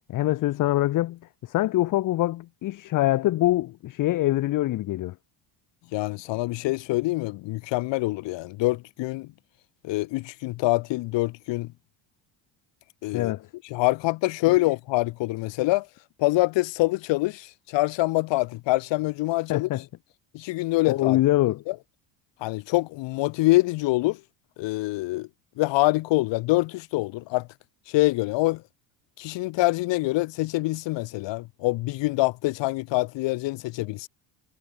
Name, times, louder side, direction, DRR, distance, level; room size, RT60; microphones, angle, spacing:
voice 1, 0.1-5.1 13.1-13.5 14.5-14.6 19.5-19.8 20.8-21.6, left 16 dB, 45° left, 0.6 m, -24 dB
voice 2, 5.9-9.3 9.8-11.7 13.0-13.3 13.7-15.9 16.2-19.7 20.3-21.2 21.7-21.8 22.4-24.2 24.6-25.3 25.6-27.5 27.9-28.6 29.2-34.1, left 20 dB, 65° left, 1.0 m, -25 dB
cardioid pair, 105°, 48 cm